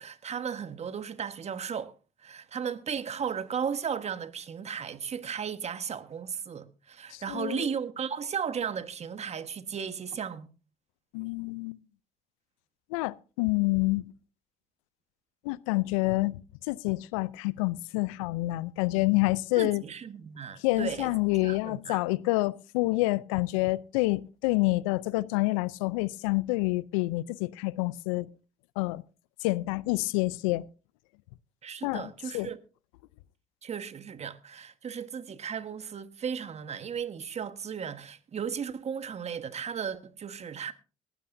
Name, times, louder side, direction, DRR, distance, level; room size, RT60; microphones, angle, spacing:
voice 1, 0.0-1.9 2.2-10.5 19.6-21.1 21.4-22.0 31.6-32.6 33.6-40.7, right 7 dB, 40° right, 1.3 m, -35 dB
voice 2, 7.1-7.7 11.1-11.8 12.9-14.1 15.4-16.4 16.7-19.8 20.6-28.3 28.8-29.0 29.4-30.6 31.8-32.5, left 21 dB, 80° left, 0.5 m, -28 dB
18.0 x 12.5 x 2.6 m
hypercardioid pair, 60°, 17 cm